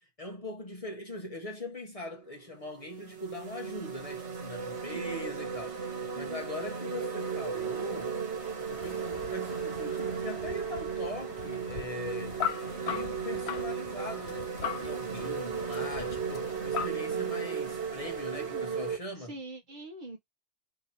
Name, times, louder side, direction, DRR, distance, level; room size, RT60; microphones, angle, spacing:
voice 1, 0.2-8.2 8.6-12.5 12.8-19.4, left 1 dB, 35° left, 0.8 m, -41 dB
sound 1, 2.0-2.2 2.8-19.0, right 6 dB, 70° right, 1.5 m, -35 dB
voice 2, 4.8-5.1 6.2-6.5 15.2-16.2 18.3-18.9 19.2-20.2, right 2 dB, 50° right, 0.8 m, -44 dB
sound 2, 8.7-16.9, left 9 dB, 70° left, 0.8 m, -40 dB
2.9 x 2.8 x 4.1 m
omnidirectional pair, 1.2 m